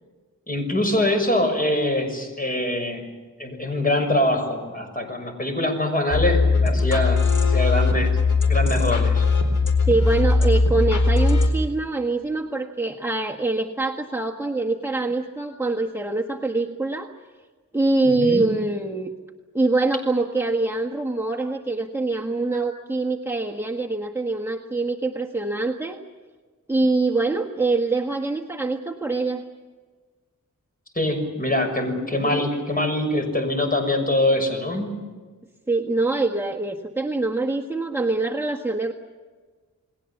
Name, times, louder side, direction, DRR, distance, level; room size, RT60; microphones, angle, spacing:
voice 1, 0.5-3.1 3.4-8.1 8.5-9.2 18.0-18.4 30.9-35.0, left 1 dB, 30° left, 5 dB, 6.1 m, -24 dB
sound 1, 6.1-11.5, left 3 dB, 75° left, 4.3 m, -19 dB
voice 2, 9.9-17.1 17.7-19.1 19.5-26.0 26.7-29.4 32.1-32.3 35.7-38.9, right 2 dB, 10° right, -1 dB, 1.5 m, -24 dB
29.5 x 20.5 x 7.2 m, 1.4 s
wide cardioid pair, 95°, 31 cm